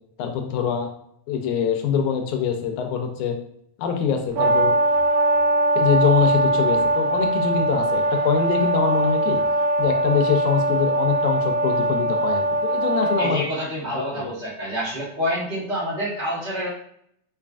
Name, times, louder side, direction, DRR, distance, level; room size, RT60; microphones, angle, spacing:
voice 1, 0.2-0.9 1.3-3.4 3.8-4.8 5.8-9.4 9.8-13.4 13.9-14.2, left 7 dB, 85° left, 4 dB, 2.0 m, -24 dB
Brass instrument, 4.4-13.4, right 1 dB, 80° right, 1.8 m, -21 dB
voice 2, 13.2-16.7, equal, 55° right, -9 dB, 0.5 m, -27 dB
5.2 x 2.3 x 2.5 m, 0.70 s
omnidirectional pair, 3.4 m